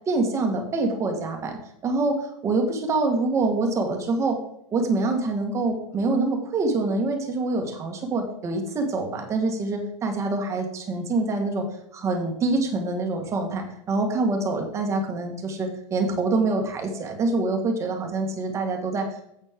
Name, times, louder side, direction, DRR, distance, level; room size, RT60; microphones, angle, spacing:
voice 1, 0.1-4.4 4.7-11.7 11.9-19.2, right 3 dB, 15° right, 3 dB, 1.6 m, -25 dB
10.5 x 8.2 x 3.6 m, 0.75 s
supercardioid pair, 165°, 17 cm